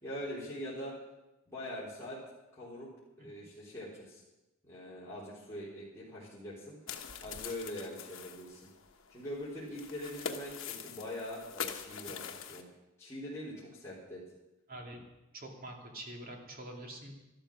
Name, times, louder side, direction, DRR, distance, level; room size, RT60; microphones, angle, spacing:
voice 1, 0.0-0.9 1.5-2.2 2.5-2.9 3.2-4.2 4.6-6.8 7.2-8.7 9.1-12.7 13.0-14.2, left 1 dB, 15° left, -9 dB, 3.9 m, -43 dB
sound 1, 6.9-12.6, left 7 dB, 70° left, 1.2 m, -43 dB
voice 2, 14.7-15.0 15.3-17.1, right 1 dB, 45° right, 1 dB, 2.6 m, -45 dB
13.0 x 12.5 x 6.3 m, 1.0 s
head